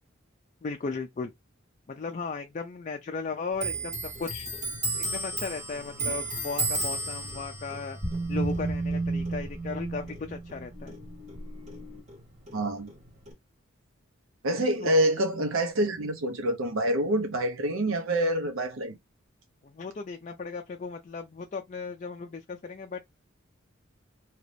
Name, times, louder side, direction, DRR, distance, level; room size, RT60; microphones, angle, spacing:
voice 1, 0.6-1.3 1.9-4.5 5.0-8.0 8.3-11.0 14.8-14.9 19.6-23.0, left 4 dB, 35° left, 0.3 m, -36 dB
Clock, 3.6-10.6 10.9-12.2 12.5-13.3, right 2 dB, 35° right, 1.2 m, -34 dB
sound 1, 6.6-12.0, right 2 dB, 65° right, 1.3 m, -34 dB
voice 2, 12.5-12.9 14.4-18.9, right 1 dB, 80° right, 0.7 m, -26 dB
2.9 x 2.6 x 3.2 m
head